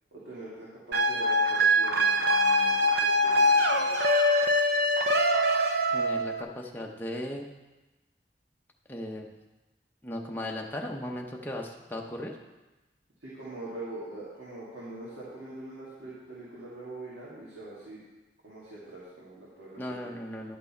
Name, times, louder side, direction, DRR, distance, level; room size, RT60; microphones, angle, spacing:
voice 1, 0.1-4.0 13.2-18.0 18.4-20.1, right 2 dB, 90° right, -8 dB, 2.2 m, -43 dB
sound 1, 0.9-6.4, equal, 65° right, 0.7 m, -23 dB
voice 2, 5.9-7.5 8.9-9.3 10.0-12.4 19.8-20.6, left 1 dB, 10° left, 0 dB, 0.7 m, -37 dB
10.5 x 6.1 x 4.3 m, 1.1 s
head